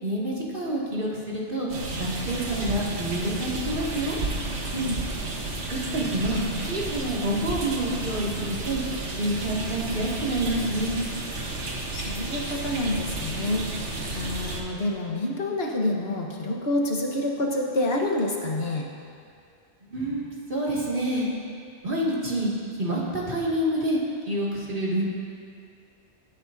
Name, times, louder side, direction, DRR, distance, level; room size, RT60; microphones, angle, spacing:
voice 1, 0.0-1.7 2.0-4.2 5.9-8.8 9.2-10.9 19.9-21.3 21.8-24.0 24.3-25.0, right 1 dB, 50° right, -6 dB, 2.3 m, -27 dB
sound 1, 1.7-14.6, right 2 dB, 85° right, 1.6 m, -32 dB
voice 2, 11.9-18.9, left 1 dB, 60° left, -1 dB, 1.5 m, -28 dB
20.5 x 9.5 x 2.7 m, 2.3 s
omnidirectional pair, 1.2 m